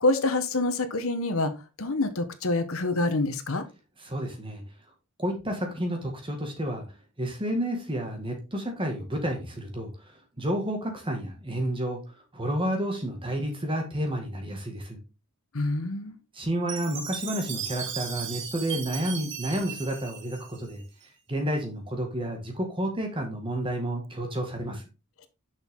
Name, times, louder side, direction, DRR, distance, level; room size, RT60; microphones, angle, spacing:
voice 1, 0.0-1.5 1.8-3.6 15.5-16.2, left 2 dB, 65° left, 1.1 m, -26 dB
voice 2, 4.0-4.6 5.2-6.8 7.2-9.9 10.4-15.0 16.3-20.8 21.3-24.8, right 1 dB, 25° right, 1.9 m, -30 dB
Chime, 16.7-21.0, right 8 dB, 55° right, 1.6 m, -37 dB
6.8 x 6.1 x 3.7 m
head